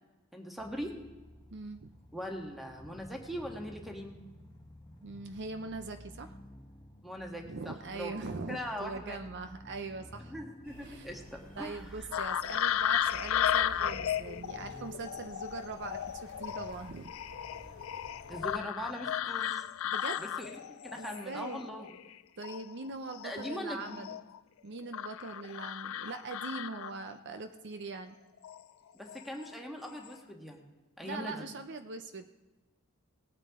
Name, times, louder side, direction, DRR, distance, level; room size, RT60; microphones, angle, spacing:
voice 1, 0.3-0.9 2.1-4.2 7.0-9.2 10.3-12.1 18.3-19.6 20.2-21.9 23.2-24.1 28.9-30.6 31.0-31.5, equal, ahead, 2 dB, 1.6 m, -41 dB
sound 1, 0.6-19.7, equal, 20° left, 1.5 m, -54 dB
voice 2, 1.5-1.9 5.0-6.3 7.4-10.3 10.8-11.2 11.6-17.1 19.8-20.2 21.0-21.7 22.4-24.2 24.6-28.1 31.0-32.3, right 3 dB, 55° right, 8 dB, 0.7 m, -42 dB
sound 2, 10.6-18.6, right 1 dB, 90° right, 2.4 m, -52 dB
sound 3, 12.1-22.1 22.4-24.4 24.9-27.2 28.4-28.6 29.1-29.5 29.8-30.1, left 10 dB, 65° left, 0.4 m, -35 dB
19.0 x 9.0 x 3.7 m, 1.1 s
head